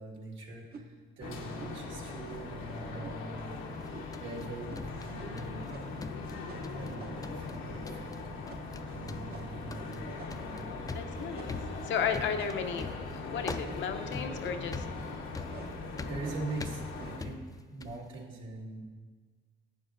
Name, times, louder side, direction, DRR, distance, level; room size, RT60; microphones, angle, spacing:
voice 1, 0.0-3.6 4.2-5.7 6.7-8.6 8.9-10.0 10.4-10.7 15.4-15.7 16.0-18.8, right 2 dB, 75° right, -3 dB, 1.7 m, -43 dB
sound 1, 0.7-0.9 1.6-1.8 2.3-2.6 3.0-3.2 3.9-4.2 4.7-4.9 5.2-5.3 5.7-6.0 6.5-7.3 7.8-8.2 8.5-8.7 9.3-9.6 10.2-10.5 11.3-11.7 12.4-12.8 13.6-14.0 14.4-14.7 15.5-15.8 16.2-16.6 17.0-17.3, right 5 dB, 50° right, 0.8 m, -50 dB
sound 2, 1.2-17.2, left 3 dB, 85° left, 1.0 m, -40 dB
sound 3, 3.7-5.7 6.0-6.9 7.2-7.6 7.9-8.2 8.5-8.8 9.1-18.1, left 3 dB, 20° left, 0.4 m, -43 dB
voice 2, 10.9-11.6 11.8-12.9 13.1-14.8, left 7 dB, 70° left, 7 dB, 0.7 m, -34 dB
11.5 x 7.5 x 2.6 m, 1.5 s
cardioid pair, 90°, 20 cm